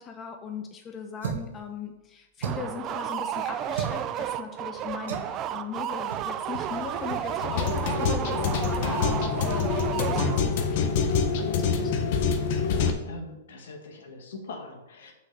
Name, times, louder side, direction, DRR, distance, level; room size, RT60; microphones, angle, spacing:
voice 1, 0.0-11.9, left 6 dB, 25° left, 4 dB, 0.9 m, -39 dB
sound 1, 1.2-1.6 2.4-2.8 3.7-4.0 5.1-5.3 6.1-6.3 6.5-6.7 7.1-7.2, right 7 dB, 75° right, 1.5 m, -34 dB
sound 2, 2.4-10.7, right 10 dB, 35° right, 0.5 m, -32 dB
sound 3, 6.7-12.9, left 5 dB, 55° left, 1.1 m, -26 dB
voice 2, 12.5-15.1, left 3 dB, 75° left, 2 dB, 1.9 m, -43 dB
6.2 x 5.5 x 6.4 m, 0.91 s
hypercardioid pair, 130°, 0 cm